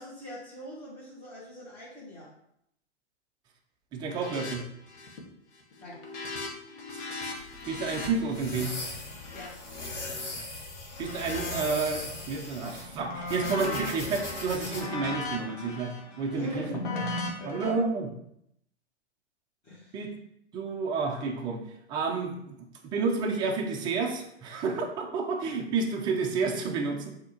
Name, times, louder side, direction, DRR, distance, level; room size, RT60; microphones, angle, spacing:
voice 1, 0.0-2.3 4.4-4.5 5.8-6.0 9.3-9.5 16.4-17.0 17.4-17.8 19.6-19.9, equal, 20° left, -10 dB, 1.7 m, -42 dB
voice 2, 3.9-4.6 6.9-7.0 7.7-8.7 11.0-16.7 17.5-18.1 19.9-20.1 20.5-21.6 21.9-22.3 22.8-27.1, right 4 dB, 15° right, 2 dB, 0.4 m, -30 dB
sound 1, 4.1-4.6 4.8-5.3 5.6-10.4 10.9-12.2 12.6-17.7, left 2 dB, 45° left, 1.1 m, -38 dB
sound 2, 7.4-14.8, left 2 dB, 85° left, 1.5 m, -39 dB
6.2 x 2.8 x 2.8 m, 0.75 s
hypercardioid pair, 120°, 35 cm